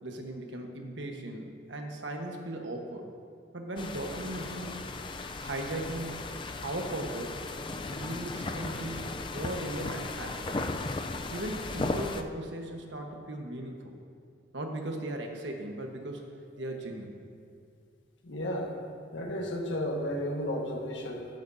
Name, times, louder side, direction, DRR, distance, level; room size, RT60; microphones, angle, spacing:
voice 1, 0.0-3.1 3.5-4.9 5.4-6.3 6.6-7.4 7.9-10.6 11.3-13.9 14.5-16.3 16.6-17.1, right 1 dB, 80° right, 3 dB, 1.2 m, -37 dB
sound 1, 3.8-12.2, left 3 dB, 25° left, 0.4 m, -36 dB
voice 2, 18.2-18.7 19.1-21.3, equal, 85° left, 1 dB, 1.5 m, -33 dB
14.0 x 10.5 x 2.7 m, 2.3 s
head